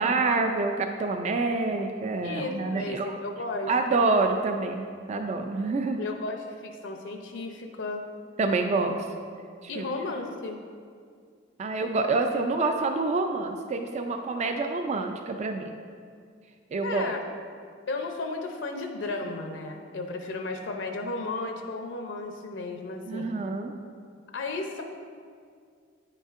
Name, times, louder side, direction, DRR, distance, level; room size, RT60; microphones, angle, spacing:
voice 1, 0.0-3.1 3.7-6.0 8.4-9.0 9.6-9.9 11.6-15.8 16.7-17.1 23.1-23.7, right 3 dB, 35° right, 5 dB, 0.3 m, -27 dB
voice 2, 2.2-4.1 6.0-8.0 9.7-10.6 16.8-17.2 17.9-23.3 24.3-24.8, left 3 dB, 70° left, 4 dB, 0.5 m, -34 dB
9.4 x 5.3 x 2.5 m, 2.2 s
head